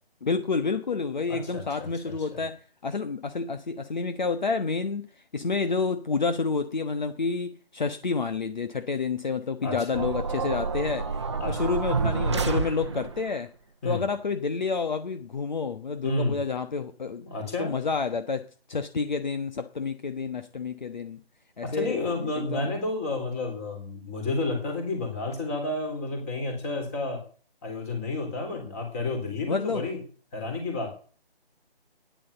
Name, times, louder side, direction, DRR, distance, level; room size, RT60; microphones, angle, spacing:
voice 1, 0.2-5.1 5.3-11.1 11.5-13.5 13.8-17.2 17.6-21.2 21.6-22.0 22.3-22.7 29.5-29.9, left 4 dB, 45° left, 8 dB, 1.2 m, -29 dB
voice 2, 1.3-1.6 2.3-2.4 9.6-9.7 11.4-11.7 13.8-14.0 16.0-16.4 17.2-17.7 21.6-27.2 27.6-30.0 30.3-30.9, left 2 dB, 15° left, 3 dB, 3.6 m, -30 dB
sound 1, 9.9-13.3, right 4 dB, 30° right, 0.9 m, -28 dB
14.0 x 10.5 x 6.8 m, 0.43 s
figure-of-eight pair, 170°, 30 cm